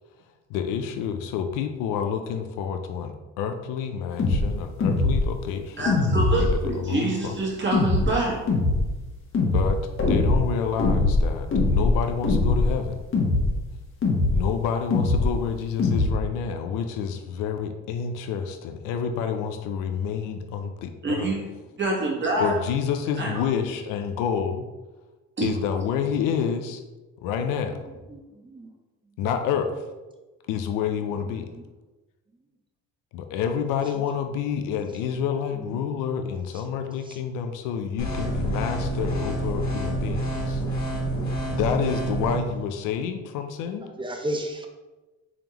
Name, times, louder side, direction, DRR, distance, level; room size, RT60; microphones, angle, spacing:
voice 1, 0.5-5.9 6.3-7.3 9.5-9.8 10.1-13.0 14.3-21.3 22.4-24.6 25.4-26.8 27.2-27.8 29.2-29.9 30.5-31.5 33.1-40.6 41.5-43.8, left 7 dB, 85° left, 6 dB, 0.5 m, -28 dB
sound 1, 4.2-4.4 4.8-5.2 5.9-6.6 7.7-8.1 8.5-8.8 9.3-9.7 10.0-10.4 10.8-11.2 11.5-11.9 12.2-12.7 13.1-13.5 14.0-14.4 14.9-15.3 15.8-16.1, left 3 dB, 45° left, 1.1 m, -21 dB
voice 2, 5.8-8.4 21.0-21.4 21.8-22.5 23.2-23.3 25.4-25.5, right 2 dB, 35° right, -2 dB, 1.4 m, -26 dB
voice 3, 28.1-28.7 31.5-31.6 35.5-35.9 37.1-37.2 43.8-44.7, right 1 dB, 15° right, 3 dB, 0.6 m, -34 dB
sound 2, 38.0-42.4, right 1 dB, 60° left, 1.5 m, -28 dB
3.5 x 3.5 x 2.9 m, 1.2 s
supercardioid pair, 80°, 31 cm